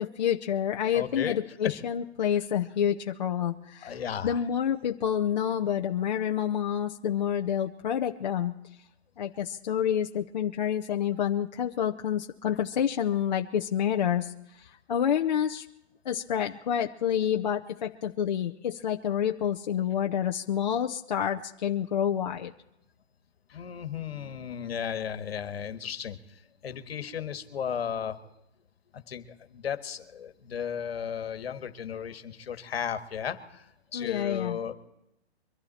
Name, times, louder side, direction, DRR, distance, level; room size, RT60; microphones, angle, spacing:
voice 1, 0.0-8.5 9.2-15.7 16.0-22.5 33.9-34.6, left 9 dB, 40° left, 3 dB, 0.7 m, -28 dB
voice 2, 0.9-1.4 1.6-1.8 3.8-4.4 23.5-28.2 28.9-29.3 29.5-33.7 33.9-34.7, left 8 dB, 65° left, 10 dB, 1.7 m, -35 dB
23.5 x 12.0 x 4.3 m, 0.87 s
hypercardioid pair, 165°, 33 cm